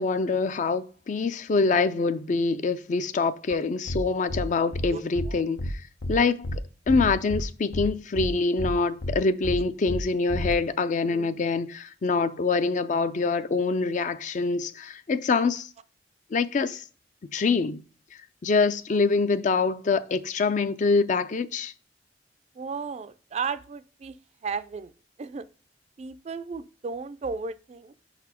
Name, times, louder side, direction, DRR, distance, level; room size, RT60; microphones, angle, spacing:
voice 1, 0.0-5.8 6.1-6.6 6.9-15.7 16.3-16.8 17.3-17.8 18.4-21.7, left 4 dB, 45° left, 0.4 m, -25 dB
sound 1, 3.9-4.0 4.3-4.4 4.7-4.9 5.2-5.3 5.6-5.7 6.0-6.1 6.4-6.6 6.9-7.4 7.7-7.9 8.2-8.3 8.6-8.7 9.0-9.1 9.4-9.6 9.9-10.0 10.3-10.5, equal, 85° left, 0.8 m, -30 dB
voice 2, 4.9-5.5 11.0-11.3 22.6-24.2 24.4-24.9 25.2-25.4 26.0-28.0, right 5 dB, 35° right, 0.3 m, -34 dB
5.4 x 4.1 x 4.3 m
head